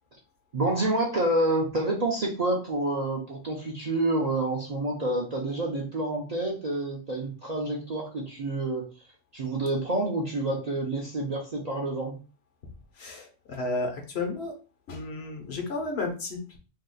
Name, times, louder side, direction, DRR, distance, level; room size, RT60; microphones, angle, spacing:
voice 1, 0.5-8.8 9.3-12.1, right 2 dB, 45° right, -2 dB, 0.5 m, -28 dB
voice 2, 12.9-14.5 14.9-16.6, left 3 dB, 60° left, 3 dB, 0.9 m, -32 dB
2.8 x 2.4 x 3.7 m, 0.34 s
omnidirectional pair, 1.3 m